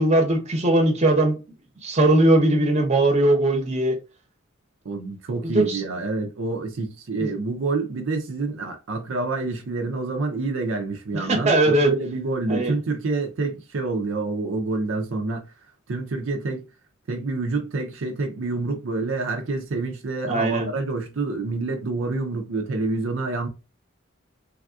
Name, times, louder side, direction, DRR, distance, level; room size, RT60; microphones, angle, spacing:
voice 1, 0.0-1.4 1.8-4.0 5.4-5.8 7.2-7.3 11.3-11.9 12.5-12.7 20.3-20.7, right 1 dB, 35° right, 0.8 m, -19 dB
voice 2, 4.8-15.5 15.9-16.7 17.1-23.5, right 3 dB, 75° right, 0.5 m, -27 dB
3.4 x 2.3 x 2.4 m
head